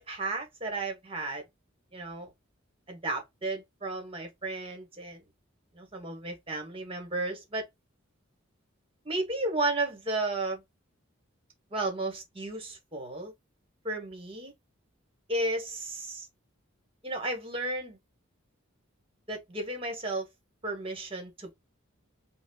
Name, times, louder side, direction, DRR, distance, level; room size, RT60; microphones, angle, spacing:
voice 1, 0.0-1.4 1.9-2.3 2.9-5.2 5.7-7.7 9.0-10.6 11.7-13.3 13.8-14.5 15.3-16.3 17.0-18.0 19.3-20.2 20.6-21.5, right 2 dB, 30° right, 1.1 m, -33 dB
4.9 x 2.0 x 2.3 m
head